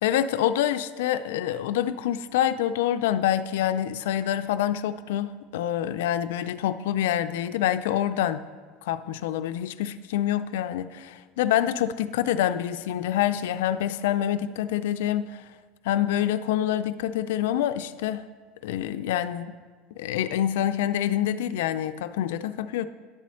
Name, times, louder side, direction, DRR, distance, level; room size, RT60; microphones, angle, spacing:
voice 1, 0.0-8.4 8.8-15.4 15.8-18.2 18.6-19.5 20.0-22.9, left 11 dB, 85° left, 11 dB, 0.3 m, -26 dB
10.5 x 4.2 x 7.5 m, 1.5 s
supercardioid pair, 130°, 0 cm